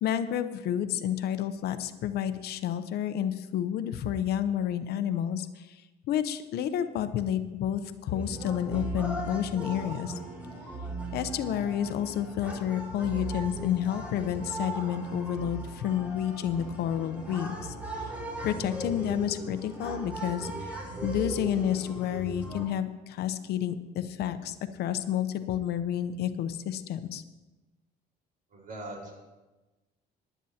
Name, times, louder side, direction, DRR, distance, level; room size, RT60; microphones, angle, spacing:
voice 1, 0.0-5.8 6.1-10.1 11.1-18.1 18.4-20.7 21.0-27.2, left 10 dB, 70° left, 10 dB, 0.8 m, -30 dB
sound 1, 8.1-22.6, right 1 dB, 10° right, 2.8 m, -38 dB
voice 2, 28.5-29.1, right 1 dB, 55° right, -1 dB, 4.6 m, -40 dB
18.5 x 11.0 x 2.9 m, 1.2 s
cardioid pair, 110°, 17 cm